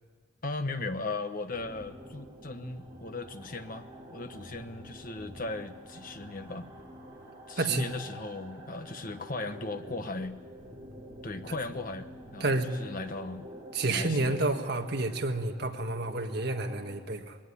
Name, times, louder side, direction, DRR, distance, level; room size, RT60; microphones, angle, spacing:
voice 1, 0.4-6.7 7.5-10.4 11.2-13.5 13.8-14.4, left 3 dB, 40° left, 8 dB, 1.2 m, -37 dB
sound 1, 1.5-16.9, right 1 dB, 15° right, 5.2 m, -48 dB
voice 2, 7.6-7.9 12.4-12.7 13.7-17.4, right 2 dB, 50° right, 5 dB, 1.6 m, -29 dB
21.0 x 18.0 x 9.9 m, 1.5 s
head